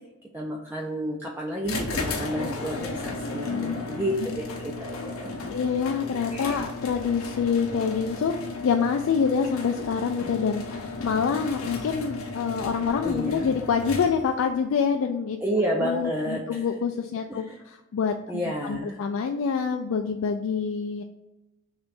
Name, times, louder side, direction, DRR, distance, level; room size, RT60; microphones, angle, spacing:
voice 1, 0.3-5.5 6.3-6.6 13.0-13.5 15.4-16.6 17.3-17.6 18.3-19.0, equal, 10° right, -1 dB, 0.4 m, -30 dB
sound 1, 1.6-14.4, left 3 dB, 85° left, 0.7 m, -35 dB
voice 2, 3.4-3.9 4.2-4.4 5.5-8.3 8.6-15.4 15.8-21.0, left 6 dB, 65° left, 4 dB, 0.3 m, -26 dB
3.2 x 2.9 x 4.6 m, 0.99 s
head